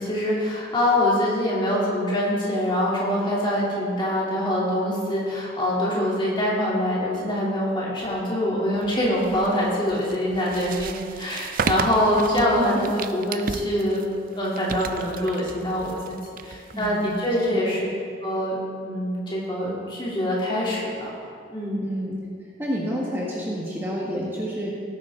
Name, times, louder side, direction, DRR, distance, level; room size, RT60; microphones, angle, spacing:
voice 1, 0.0-14.0 14.3-16.1 16.4-17.9 18.2-18.6 18.8-21.1 21.5-21.9, left 1 dB, 25° left, -6 dB, 2.9 m, -24 dB
sound 1, 8.8-17.5, right 5 dB, 45° right, 0.5 m, -34 dB
voice 2, 12.3-12.6 16.7-17.1 17.5-17.7 21.8-22.2 22.6-24.7, equal, 10° right, -5 dB, 1.3 m, -29 dB
17.5 x 9.4 x 3.7 m, 2.3 s
head